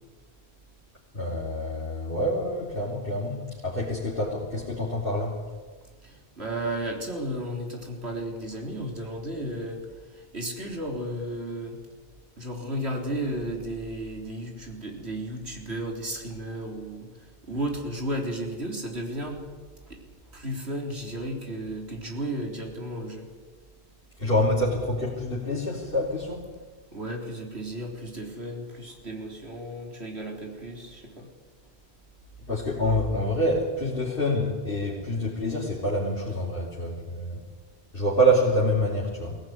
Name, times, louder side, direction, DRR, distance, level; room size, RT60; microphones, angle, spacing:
voice 1, 1.1-5.4 24.2-26.5 32.5-37.4 37.9-39.4, equal, 60° left, -6 dB, 4.2 m, -26 dB
voice 2, 6.0-9.8 10.1-11.8 12.4-17.1 17.5-19.4 19.9-20.0 20.3-23.3 26.9-31.3, right 1 dB, 80° right, 2 dB, 4.2 m, -33 dB
22.5 x 17.5 x 9.6 m, 1.4 s
omnidirectional pair, 1.1 m